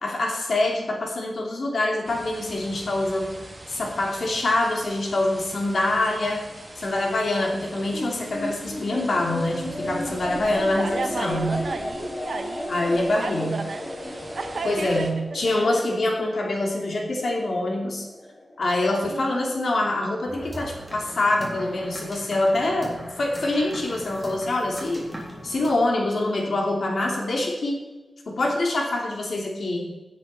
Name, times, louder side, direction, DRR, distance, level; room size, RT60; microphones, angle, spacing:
voice 1, 0.0-3.3 3.7-6.4 6.8-11.6 12.7-13.5 14.6-18.0 18.6-25.0 25.4-27.8 28.3-29.9, left 2 dB, 65° left, 0 dB, 2.8 m, -25 dB
sound 1, 2.0-15.1, right 1 dB, 25° right, 2.1 m, -43 dB
sound 2, 7.9-20.5, left 1 dB, 30° left, 1.6 m, -35 dB
voice 2, 10.1-15.8 19.0-20.0, right 3 dB, 60° right, 6 dB, 1.4 m, -34 dB
sound 3, 20.3-25.7, equal, 5° right, 3.4 m, -39 dB
17.0 x 8.5 x 4.4 m, 1.1 s
wide cardioid pair, 145°, 0 cm